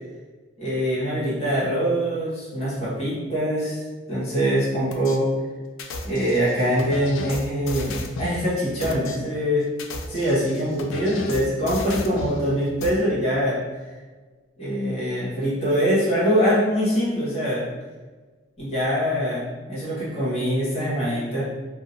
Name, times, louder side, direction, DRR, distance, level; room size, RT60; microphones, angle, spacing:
voice 1, 0.6-3.8 4.1-5.3 6.0-9.7 10.1-13.6 14.6-17.6 18.6-21.4, equal, 30° left, -9 dB, 1.2 m, -23 dB
sound 1, 4.9-5.2 5.8-8.4 8.8-9.2 9.7-12.4 12.8-12.9, left 2 dB, 75° left, 0.4 m, -34 dB
2.7 x 2.4 x 2.6 m, 1.3 s
head